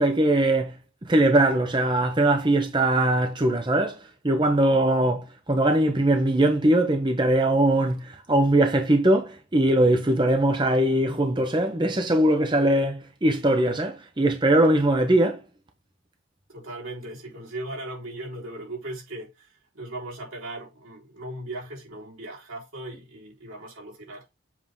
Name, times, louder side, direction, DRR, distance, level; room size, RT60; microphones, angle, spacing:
voice 1, 0.0-15.4, right 1 dB, 20° right, 0.7 m, -21 dB
voice 2, 16.5-24.3, right 1 dB, 85° right, 3.7 m, -38 dB
7.4 x 3.5 x 3.6 m
head